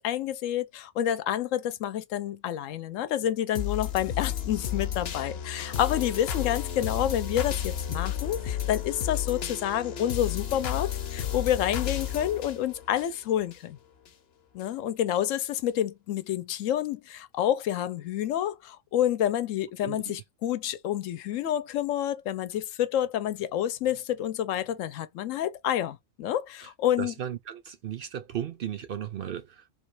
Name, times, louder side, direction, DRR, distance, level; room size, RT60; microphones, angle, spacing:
voice 1, 0.0-13.8 14.5-27.1, left 11 dB, 85° left, 1.0 m, -29 dB
sound 1, 3.5-13.6 14.1-14.2, left 9 dB, 60° left, 0.9 m, -32 dB
voice 2, 27.0-29.7, right 9 dB, 60° right, 0.6 m, -35 dB
3.5 x 2.9 x 4.7 m
omnidirectional pair, 1.3 m